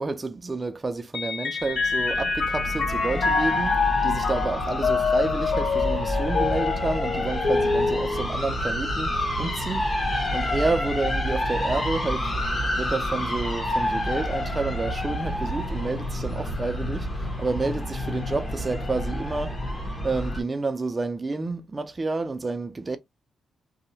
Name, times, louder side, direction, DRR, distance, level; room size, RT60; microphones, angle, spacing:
voice 1, 0.0-10.1 10.3-12.3 12.8-17.1 17.4-19.6 20.0-23.0, right 3 dB, 25° right, 0.3 m, -29 dB
Mallet percussion, 1.1-8.9, left 4 dB, 60° left, 0.7 m, -26 dB
sound 1, 1.6-20.4, left 1 dB, 30° left, 0.8 m, -29 dB
2.6 x 2.0 x 2.7 m
cardioid pair, 125°, 0 cm